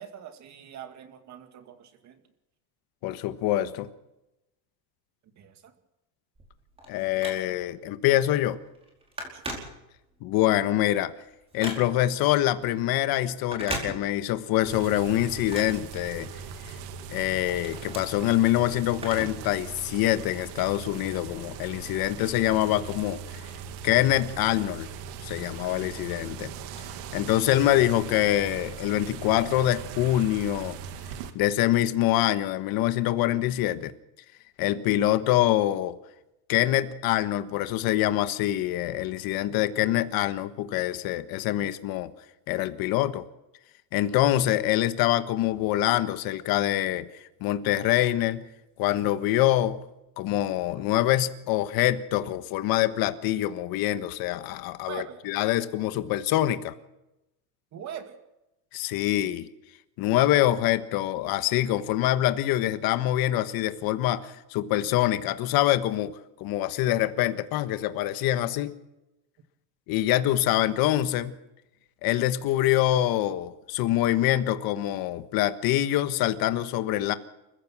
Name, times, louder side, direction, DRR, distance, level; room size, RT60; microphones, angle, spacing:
voice 1, 0.0-2.2 5.4-5.7 9.3-9.4 54.9-55.2 57.7-58.1, right 9 dB, 35° right, 7 dB, 2.3 m, -42 dB
voice 2, 3.0-3.9 6.9-8.6 10.2-11.1 11.5-16.3 16.6-16.7 17.1-23.4 23.8-24.9 25.2-26.5 27.1-30.8 31.3-33.9 34.6-36.0 36.5-42.1 42.5-43.2 43.9-47.1 47.4-48.4 48.8-49.8 50.2-56.7 58.7-59.5 60.0-68.8 69.9-71.4 72.0-77.1, left 14 dB, 45° left, 11 dB, 1.4 m, -25 dB
Telephone, 6.4-7.8 8.3-8.5 8.7-10.2 10.7-12.2 13.4-14.5 14.8-16.6 17.0-19.5 19.8-19.9 20.8-20.9, right 1 dB, 10° right, 4.8 m, -39 dB
sound 1, 14.6-31.3, right 7 dB, 55° right, 2.2 m, -40 dB
28.5 x 15.5 x 6.1 m, 0.93 s
cardioid pair, 160°, 49 cm